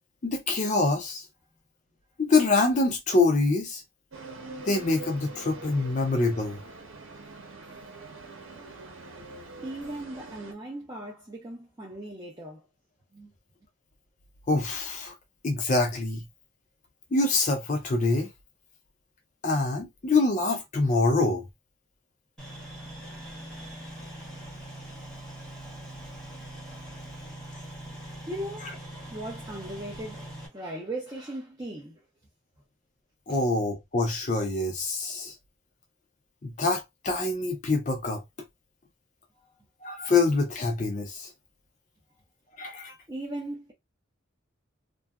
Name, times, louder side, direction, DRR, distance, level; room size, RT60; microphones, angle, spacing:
voice 1, 0.2-1.2 2.2-3.8 4.6-6.6 14.5-15.1 15.4-16.2 17.1-18.3 19.4-21.5 33.3-35.3 36.4-38.2 39.8-41.3 42.6-42.9, left 3 dB, 40° left, 0.4 m, -25 dB
sound 1, 4.1-10.5, right 3 dB, 85° right, 0.8 m, -44 dB
voice 2, 9.6-12.6 13.1-13.3 28.0-28.7 29.1-32.0 33.3-33.4 39.4-39.5 43.1-43.7, right 1 dB, 20° right, 0.5 m, -38 dB
sound 2, 22.4-30.5, right 1 dB, 5° left, 1.0 m, -42 dB
2.6 x 2.3 x 2.3 m
head